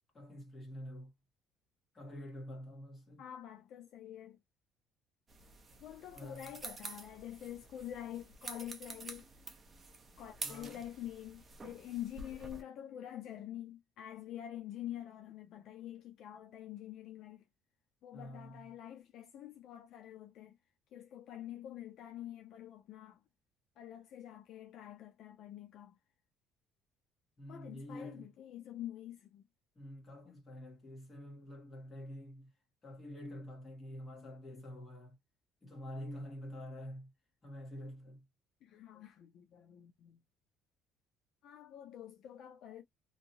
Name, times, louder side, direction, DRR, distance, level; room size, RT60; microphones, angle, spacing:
voice 1, 0.1-1.1 1.9-3.2 6.1-6.5 10.4-10.8 18.1-18.7 27.4-28.3 29.7-32.5 32.8-35.2 35.6-37.1 37.4-38.2, equal, 15° left, 1.5 m, -47 dB
voice 2, 3.2-4.4 5.8-9.3 10.2-17.4 18.0-20.6 20.9-23.2 23.8-26.0 27.5-29.5 38.6-40.2 41.4-42.8, left 11 dB, 50° left, 0.4 m, -47 dB
sound 1, 5.3-12.6, right 3 dB, 20° right, 0.7 m, -49 dB
2.9 x 2.7 x 2.6 m
cardioid pair, 175°, 0 cm